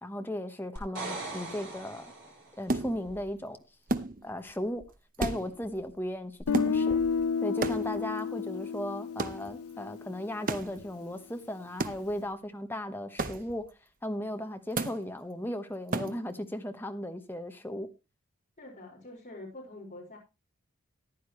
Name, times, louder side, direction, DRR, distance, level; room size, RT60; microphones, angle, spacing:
voice 1, 0.0-2.1 2.6-3.6 4.2-4.8 5.2-7.0 7.4-13.7 14.0-17.9, left 1 dB, 10° left, 1.0 m, -36 dB
sound 1, 0.8-2.7 6.4-6.5, right 2 dB, 55° right, 6.8 m, -40 dB
sound 2, 2.7-3.3 3.9-4.5 4.8-4.9 5.1-5.9 6.5-7.2 7.6-8.2 9.2-9.5 10.5-10.9 11.8-12.3 13.2-13.7 14.8-15.1 15.9-16.3, right 2 dB, 40° right, 0.8 m, -34 dB
Guitar, 6.5-10.4, left 5 dB, 80° left, 0.6 m, -31 dB
voice 2, 18.6-20.2, left 2 dB, 35° left, 4.9 m, -45 dB
14.5 x 10.0 x 3.1 m
head